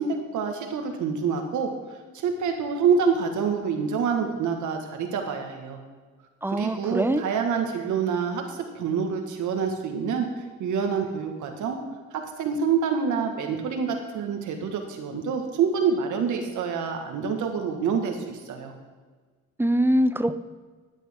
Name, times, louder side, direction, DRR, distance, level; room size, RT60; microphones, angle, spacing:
voice 1, 0.0-1.7 2.2-5.8 6.5-11.8 12.1-18.7, right 6 dB, 75° right, 4 dB, 1.7 m, -27 dB
voice 2, 6.4-7.2 19.6-20.4, right 1 dB, 5° right, 12 dB, 0.5 m, -23 dB
13.0 x 9.2 x 3.7 m, 1.4 s
cardioid pair, 90°, 30 cm